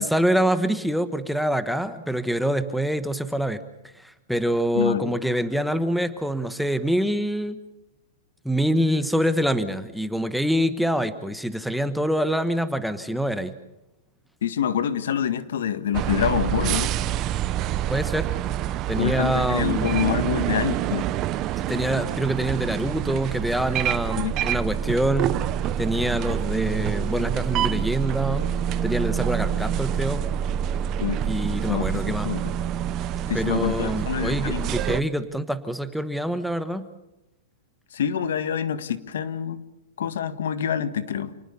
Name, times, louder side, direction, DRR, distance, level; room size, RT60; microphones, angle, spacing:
voice 1, 0.0-3.6 4.0-7.6 8.4-13.5 17.9-18.3 18.9-19.9 21.7-25.4 25.8-28.5 28.8-30.2 31.3-32.3 33.3-36.9, equal, ahead, 11 dB, 1.2 m, -25 dB
voice 2, 4.7-5.1 14.4-17.0 19.0-21.1 24.2-24.4 31.0-31.2 31.7-31.9 32.2-32.5 33.3-34.7 37.9-39.6 40.0-41.3, left 9 dB, 75° left, 12 dB, 1.7 m, -26 dB
sound 1, 15.9-35.0, right 10 dB, 30° right, 0.8 m, -27 dB
28.5 x 19.5 x 7.0 m, 0.91 s
hypercardioid pair, 150°, 0 cm